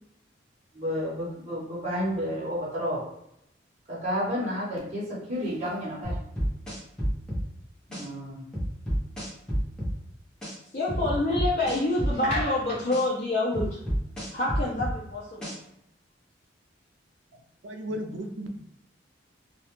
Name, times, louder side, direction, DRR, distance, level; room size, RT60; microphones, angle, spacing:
voice 1, 0.7-3.0 3.9-6.2 7.9-8.5, equal, 35° right, -7 dB, 0.9 m, -31 dB
sound 1, 6.0-7.4 7.9-8.0 8.5-9.9 10.4-10.5 10.9-12.4 12.9-13.0 13.5-14.9 15.4-15.5, equal, 5° left, 0.7 m, -29 dB
voice 2, 10.7-13.7 14.3-15.5, left 2 dB, 40° left, -7 dB, 0.5 m, -27 dB
voice 3, 17.6-18.6, equal, 75° right, 5 dB, 0.4 m, -34 dB
2.3 x 2.1 x 2.9 m, 0.77 s
head